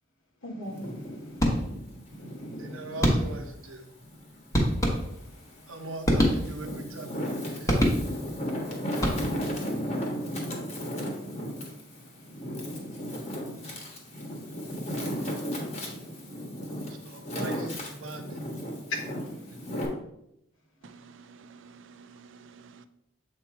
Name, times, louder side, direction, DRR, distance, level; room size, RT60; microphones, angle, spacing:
voice 1, 0.4-1.5 2.1-2.8 4.8-5.9 9.0-15.3 15.7-16.3 18.9-19.7, left 2 dB, 80° left, 2 dB, 1.3 m, -46 dB
Wind, 0.6-3.5 4.0-5.3 5.9-19.9, equal, 35° left, 1.3 m, -35 dB
sound 1, 1.4-2.0 3.0-3.6 4.5-5.4 6.0-6.8 7.7-8.4 8.9-9.6, equal, 15° left, 1.1 m, -25 dB
voice 2, 2.6-3.8 5.7-7.8 16.9-18.4, right 2 dB, 80° right, 4 dB, 1.0 m, -41 dB
voice 3, 20.8-22.9, right 5 dB, 65° right, 12 dB, 0.4 m, -51 dB
7.5 x 2.9 x 4.6 m, 0.78 s
head